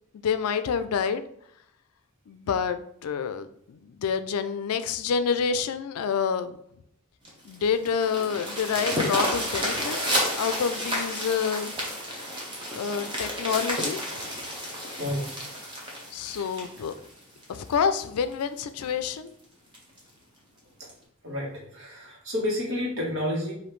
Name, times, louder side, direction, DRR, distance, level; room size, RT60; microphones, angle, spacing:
voice 1, 0.1-1.2 2.3-6.6 7.4-10.0 10.4-11.7 12.7-14.5 16.1-16.9 17.5-19.3, left 6 dB, 85° left, 11 dB, 0.4 m, -28 dB
sound 1, 7.3-17.7 18.3-18.4 18.8-18.9 19.3-19.4 19.7-20.0 20.9-21.0, equal, 20° right, 0.8 m, -31 dB
voice 2, 15.0-15.3 21.2-23.5, left 1 dB, 60° right, -3 dB, 1.4 m, -30 dB
5.0 x 2.6 x 3.1 m, 0.71 s
head